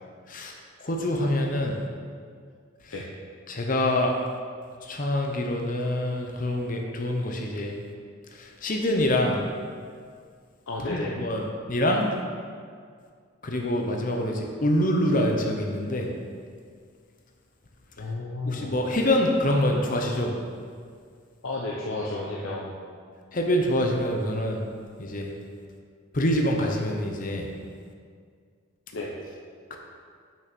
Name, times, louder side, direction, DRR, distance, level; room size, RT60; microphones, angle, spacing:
voice 1, 0.8-1.8 3.5-4.1 4.8-7.7 8.4-9.4 10.8-12.1 13.4-16.1 18.5-20.3 23.3-24.6 25.0-25.3 26.1-27.5 29.7-29.8, left 1 dB, 40° left, 1 dB, 0.8 m, -25 dB
voice 2, 10.7-11.2 18.0-18.7 21.4-22.7 28.9-29.1, left 2 dB, 75° left, -3 dB, 0.8 m, -32 dB
6.1 x 6.0 x 6.1 m, 2.1 s
head